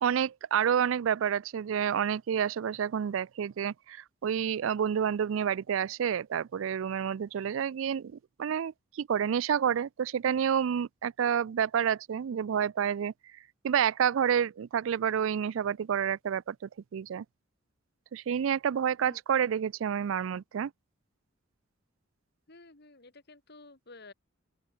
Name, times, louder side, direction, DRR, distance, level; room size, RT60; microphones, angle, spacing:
voice 1, 0.0-13.1 13.6-16.6 16.9-17.2 18.1-20.7, right 8 dB, 75° right, 0.4 m, -29 dB
voice 2, 22.5-24.1, left 3 dB, 55° left, 3.1 m, -52 dB
open air
head